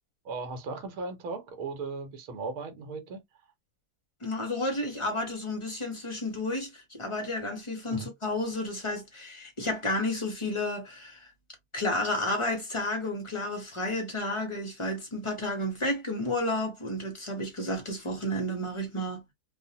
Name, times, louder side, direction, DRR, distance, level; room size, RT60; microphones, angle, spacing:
voice 1, 0.2-3.2 7.9-8.1, right 3 dB, 85° right, 1.2 m, -37 dB
voice 2, 4.2-11.3 11.7-19.3, left 1 dB, 50° left, 0.3 m, -31 dB
2.6 x 2.0 x 2.6 m
omnidirectional pair, 1.6 m